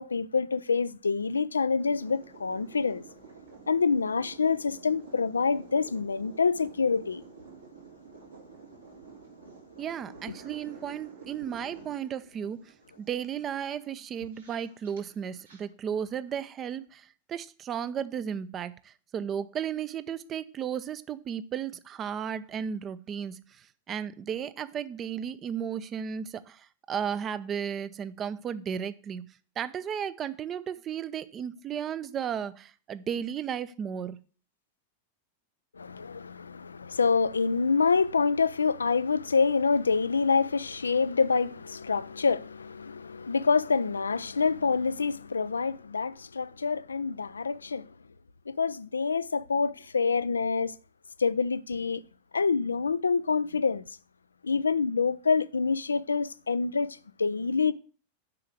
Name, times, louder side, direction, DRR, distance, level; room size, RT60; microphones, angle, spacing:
voice 1, 0.0-3.0 3.7-7.2 35.8-47.9 48.5-50.7 51.2-52.0 52.3-53.8 54.4-57.7, left 5 dB, 75° left, 0.4 m, -26 dB
sound 1, 1.8-15.6, right 5 dB, 75° right, 3.7 m, -50 dB
voice 2, 9.8-12.7 13.0-29.2 29.6-34.2, right 8 dB, 25° right, 0.6 m, -34 dB
7.7 x 5.6 x 7.5 m
figure-of-eight pair, 90°, 0 cm